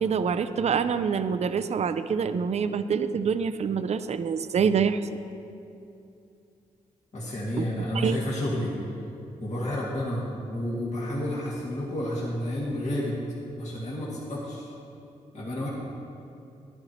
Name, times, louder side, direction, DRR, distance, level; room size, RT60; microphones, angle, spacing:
voice 1, 0.0-5.0 7.6-7.7 7.9-8.2, right 6 dB, 50° right, 11 dB, 0.5 m, -26 dB
voice 2, 7.1-8.8 9.4-13.2 13.6-14.7 15.3-15.7, left 1 dB, 55° left, -6 dB, 2.2 m, -30 dB
11.0 x 11.0 x 3.1 m, 2.7 s
supercardioid pair, 50°, 15 cm